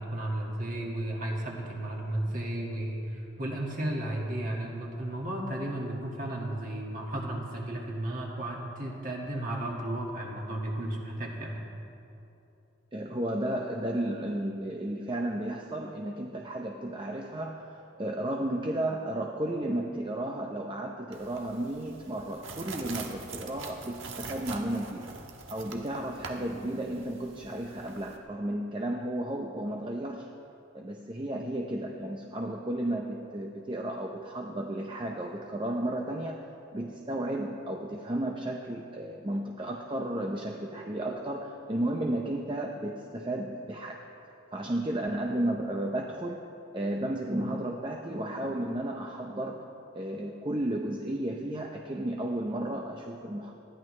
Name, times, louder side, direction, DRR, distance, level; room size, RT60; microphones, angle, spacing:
voice 1, 0.0-11.6, right 1 dB, 40° right, -2 dB, 2.0 m, -34 dB
voice 2, 12.9-25.1 25.5-30.3 30.7-44.1 44.5-49.7 49.9-53.5, right 1 dB, 25° right, 1 dB, 0.6 m, -33 dB
sound 1, 21.1-28.2, right 4 dB, 70° right, 1.3 m, -44 dB
19.5 x 14.0 x 3.3 m, 2.8 s
head